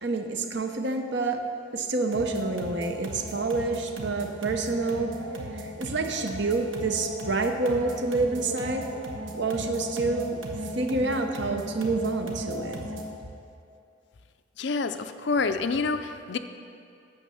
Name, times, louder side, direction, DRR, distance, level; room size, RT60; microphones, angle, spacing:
voice 1, 0.0-1.4 1.7-5.1 5.5-8.9 9.3-10.4 10.8-12.8, right 3 dB, 60° right, 5 dB, 0.8 m, -28 dB
sound 1, 2.1-13.2, equal, 75° right, 1.3 m, -36 dB
voice 2, 14.6-16.4, left 4 dB, 60° left, 9 dB, 0.5 m, -27 dB
9.3 x 6.8 x 6.9 m, 2.5 s
head